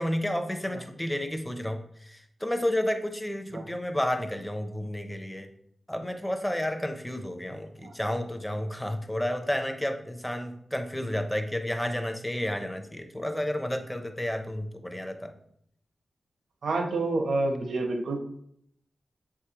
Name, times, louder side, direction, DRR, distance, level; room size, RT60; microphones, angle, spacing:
voice 1, 0.0-5.5 5.9-15.3, left 1 dB, 5° left, 6 dB, 0.6 m, -31 dB
voice 2, 16.6-18.2, right 2 dB, 90° right, 4 dB, 0.9 m, -28 dB
7.0 x 4.8 x 2.9 m, 0.70 s
wide cardioid pair, 165°, 0 cm